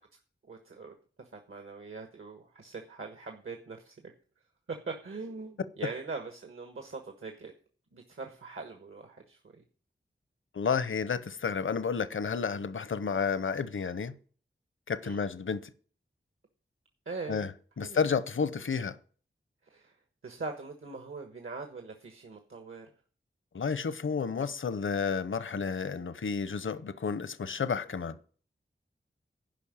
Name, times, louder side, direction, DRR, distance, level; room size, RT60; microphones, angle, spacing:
voice 1, 0.5-0.9 1.3-3.9 4.7-7.5 7.9-9.6 15.0-15.2 17.0-17.5 17.8-18.1 19.7-20.0 20.2-22.9, right 3 dB, 75° right, 1.4 m, -42 dB
voice 2, 10.5-14.1 14.9-15.7 17.3-17.5 17.8-19.0 23.5-28.2, left 6 dB, 70° left, 0.7 m, -31 dB
11.5 x 5.3 x 8.7 m
cardioid pair, 45°, 21 cm